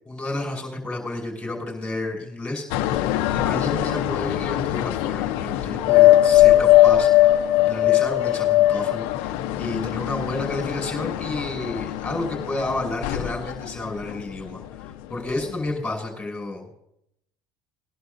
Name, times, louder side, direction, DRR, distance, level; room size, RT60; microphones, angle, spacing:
voice 1, 0.1-3.2 3.4-16.8, left 2 dB, 10° left, -1 dB, 5.7 m, -31 dB
sound 1, 2.7-14.9 15.3-15.7, left 14 dB, 75° left, 0.8 m, -20 dB
20.5 x 11.0 x 2.7 m, 0.79 s
supercardioid pair, 115°, 9 cm